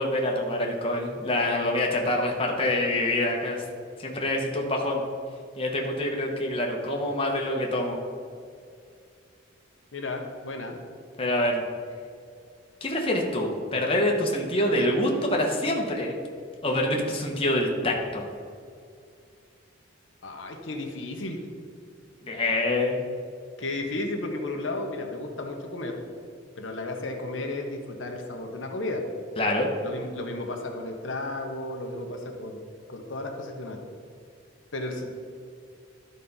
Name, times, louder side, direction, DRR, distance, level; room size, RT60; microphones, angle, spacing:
voice 1, 0.0-3.6 4.0-5.0 5.6-8.0 11.2-11.6 12.8-16.2 16.6-18.2 22.2-23.0 29.4-29.7, left 1 dB, 30° left, 0 dB, 1.0 m, -26 dB
voice 2, 9.9-10.8 20.2-21.4 23.6-26.0 26.6-29.0 29.8-32.6 32.9-33.8 34.7-35.1, left 2 dB, 80° left, 3 dB, 1.0 m, -33 dB
12.0 x 4.2 x 5.5 m, 2.3 s
head